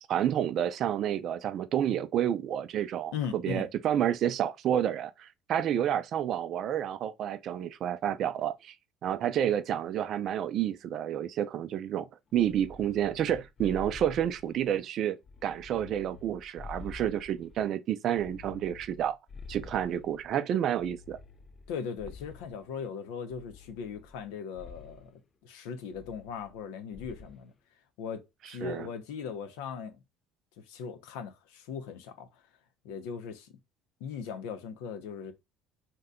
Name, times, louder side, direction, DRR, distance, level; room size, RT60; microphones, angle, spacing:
voice 1, 0.1-8.7 9.0-12.1 12.3-15.2 15.4-19.2 19.5-21.2 28.6-28.9, right 10 dB, 55° right, 0.4 m, -29 dB
voice 2, 3.1-3.7 21.7-27.5 28.0-30.0 30.7-32.3 32.8-33.5 34.0-35.3, left 6 dB, 85° left, 0.6 m, -39 dB
sound 1, 12.3-14.8 15.2-17.7 18.1-20.3 20.8-22.7 23.3-24.3 24.6-25.1 25.9-26.7 26.9-27.4, left 4 dB, 40° left, 0.4 m, -48 dB
2.7 x 2.2 x 3.6 m
supercardioid pair, 95°, 0 cm